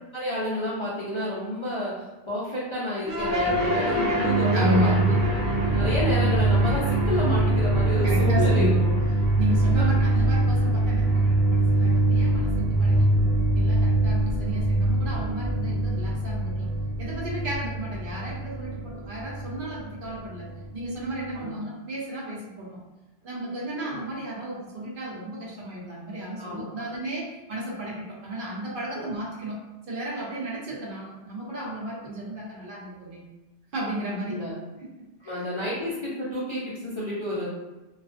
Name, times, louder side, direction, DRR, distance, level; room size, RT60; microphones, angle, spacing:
voice 1, 0.1-1.9 2.3-4.9 5.3-5.4 5.7-8.9 9.8-9.9 21.3-21.6 23.8-24.0 26.4-26.9 29.0-29.1 34.3-34.5 35.2-37.5, left 1 dB, 45° left, -8 dB, 0.4 m, -30 dB
sound 1, 3.1-21.4, right 2 dB, 20° right, 0.5 m, -23 dB
voice 2, 4.5-5.0 8.0-8.8 9.2-22.8 23.2-29.6 29.9-33.2 33.7-34.4 34.8-34.9 35.2-35.4, right 1 dB, 55° right, -5 dB, 0.7 m, -33 dB
2.4 x 2.2 x 2.4 m, 1.1 s
omnidirectional pair, 1.2 m